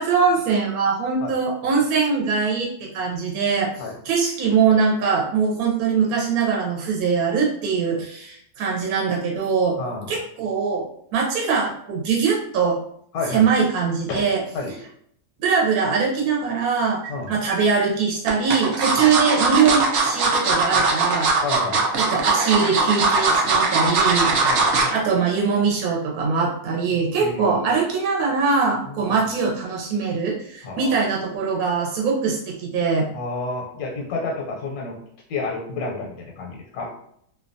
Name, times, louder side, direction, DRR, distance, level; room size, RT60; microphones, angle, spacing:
voice 1, 0.0-3.7 4.0-9.8 10.1-10.9 11.1-12.8 13.3-14.4 15.4-17.0 17.3-21.3 22.0-24.3 24.9-33.1, right 5 dB, 80° right, -2 dB, 1.1 m, -22 dB
voice 2, 9.8-10.1 13.1-13.5 14.1-14.3 14.5-14.8 17.1-17.4 21.4-21.9 24.4-24.9 27.2-27.7 28.9-29.3 30.6-30.9 33.1-35.0 35.3-36.9, left 3 dB, 80° left, 0 dB, 1.1 m, -30 dB
sound 1, 17.0-17.6 18.3-25.0 25.4-25.6 25.9-26.0, right 4 dB, 65° right, 0.7 m, -20 dB
2.6 x 2.1 x 2.5 m, 0.69 s
omnidirectional pair, 1.6 m